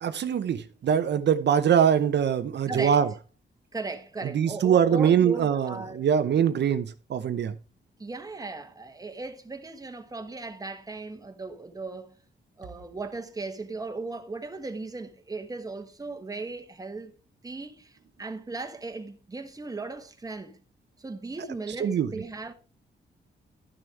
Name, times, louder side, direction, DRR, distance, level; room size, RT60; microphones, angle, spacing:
voice 1, 0.0-3.1 4.3-7.5 21.8-22.1, right 8 dB, 65° right, 0.7 m, -23 dB
voice 2, 2.7-3.0 3.7-6.1 8.0-12.2 12.6-17.1 17.4-20.6 21.0-22.5, right 3 dB, 20° right, 1.3 m, -37 dB
12.0 x 6.4 x 4.7 m
wide cardioid pair, 135°, 19 cm